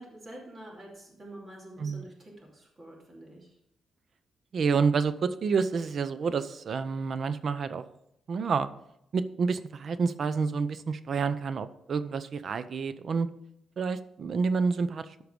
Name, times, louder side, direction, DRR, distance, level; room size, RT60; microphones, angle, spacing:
voice 1, 0.0-3.6, right 1 dB, 25° right, -3 dB, 2.8 m, -47 dB
voice 2, 4.5-7.8 8.3-8.7 9.1-13.3 13.8-15.0, right 5 dB, 50° right, 13 dB, 0.6 m, -28 dB
13.5 x 4.7 x 5.2 m, 0.79 s
wide cardioid pair, 150°, 0 cm